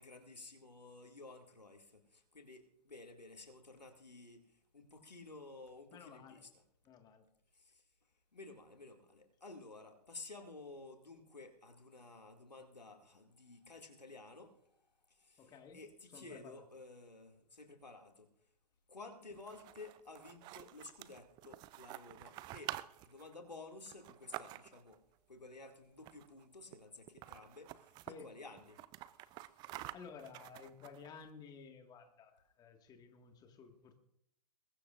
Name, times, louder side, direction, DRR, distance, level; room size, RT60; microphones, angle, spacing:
voice 1, 0.0-4.4 4.7-6.5 7.5-7.8 8.3-14.5 15.2-18.3 18.9-22.7 23.1-25.0 25.3-28.8, left 3 dB, 85° left, 3 dB, 2.4 m, -53 dB
voice 2, 5.9-6.4 6.8-7.3 15.4-16.6 28.1-28.3 29.4-29.7 29.9-34.0, left 5 dB, 20° left, 5 dB, 1.8 m, -54 dB
sound 1, 19.3-25.0 26.0-26.4 26.7-26.8 27.1-28.2 28.6-31.2, right 16 dB, 20° right, 0.5 m, -49 dB
21.5 x 19.0 x 2.5 m, 0.73 s
figure-of-eight pair, 115°, 21 cm